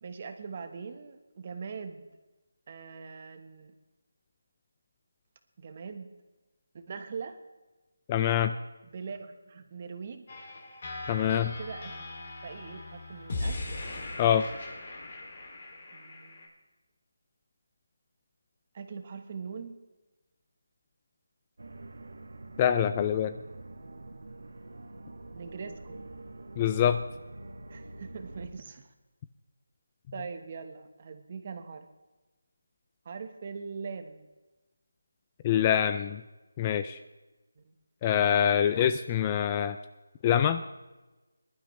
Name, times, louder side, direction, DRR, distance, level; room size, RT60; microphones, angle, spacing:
voice 1, 0.0-2.1 2.7-3.7 5.6-6.1 6.7-7.4 8.8-10.2 11.2-13.7 15.9-16.5 18.7-19.8 25.3-26.0 27.7-28.9 30.1-31.8 33.0-34.3 37.6-37.7, right 5 dB, 30° right, 8 dB, 1.2 m, -42 dB
voice 2, 8.1-8.5 11.1-11.5 14.2-14.5 22.6-23.3 26.6-27.0 35.4-36.2 36.6-37.0 38.0-39.8 40.2-40.6, left 9 dB, 15° left, 10 dB, 0.3 m, -25 dB
sound 1, 10.3-16.5, left 2 dB, 40° left, 2.8 m, -39 dB
sound 2, 21.6-28.5, right 2 dB, 70° right, 1.8 m, -45 dB
21.0 x 12.0 x 3.3 m, 1.1 s
figure-of-eight pair, 170°, 0 cm